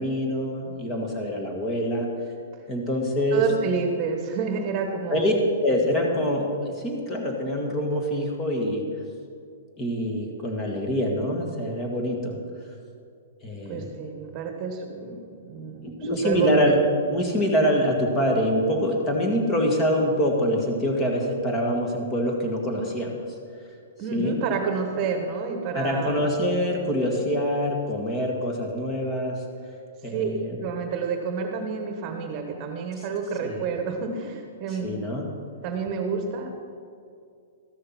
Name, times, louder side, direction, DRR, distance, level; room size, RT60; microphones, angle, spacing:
voice 1, 0.0-2.1 2.7-3.4 5.1-5.3 5.6-8.8 9.8-12.4 13.4-13.9 15.8-16.8 17.1-23.2 24.1-24.4 25.7-29.3 30.0-30.6 33.4-33.6 34.7-35.2, equal, 20° left, 1 dB, 1.7 m, -25 dB
voice 2, 3.3-5.4 13.7-16.7 24.0-26.3 30.1-30.3 30.6-34.9 35.6-36.6, right 5 dB, 35° right, 5 dB, 1.2 m, -29 dB
13.5 x 6.5 x 5.9 m, 2.4 s
hypercardioid pair, 140°, 0 cm